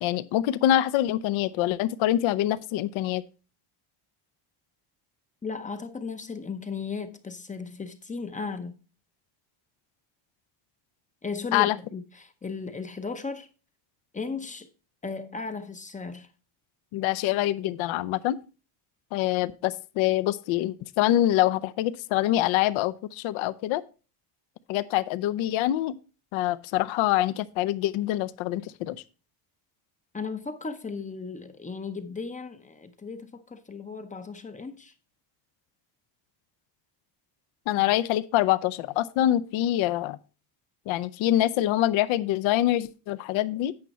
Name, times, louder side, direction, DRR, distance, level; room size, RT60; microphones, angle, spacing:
voice 1, 0.0-3.2 11.5-11.8 16.9-18.4 19.1-23.8 24.7-25.9 26.3-29.0 37.7-40.2 40.9-43.7, left 13 dB, 70° left, 0.7 m, -25 dB
voice 2, 5.4-8.7 11.2-13.5 14.1-14.7 15.0-16.3 30.1-34.9, left 4 dB, 15° left, 0.6 m, -36 dB
9.0 x 5.6 x 4.1 m
cardioid pair, 140°, 50 cm